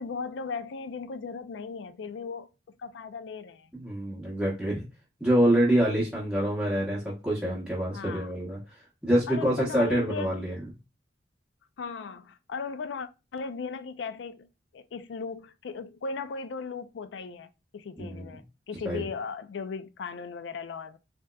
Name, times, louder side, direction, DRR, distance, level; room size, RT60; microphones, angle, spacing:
voice 1, 0.0-3.7 7.9-8.3 9.3-10.4 11.8-21.0, left 5 dB, 85° left, 0.4 m, -37 dB
voice 2, 3.7-4.9 5.2-8.6 9.0-10.6 18.0-18.2 18.8-19.0, right 1 dB, 5° right, 0.8 m, -26 dB
3.4 x 2.8 x 2.2 m
head